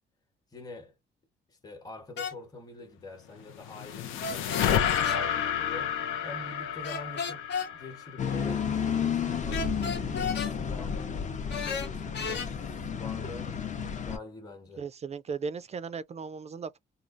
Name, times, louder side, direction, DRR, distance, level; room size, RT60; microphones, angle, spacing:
voice 1, 0.5-1.0 1.5-9.8 10.1-14.8, left 2 dB, 20° left, 1.0 m, -45 dB
sound 1, 2.2-2.4 4.2-5.2 6.8-7.7 9.5-10.5 11.5-12.5, left 5 dB, 60° left, 1.0 m, -33 dB
sound 2, 3.4-8.8, left 9 dB, 90° left, 0.6 m, -30 dB
sound 3, 8.2-14.2, left 7 dB, 40° left, 0.6 m, -32 dB
voice 2, 14.8-16.8, right 5 dB, 35° right, 0.4 m, -36 dB
3.1 x 2.3 x 2.5 m
cardioid pair, 90°, 20 cm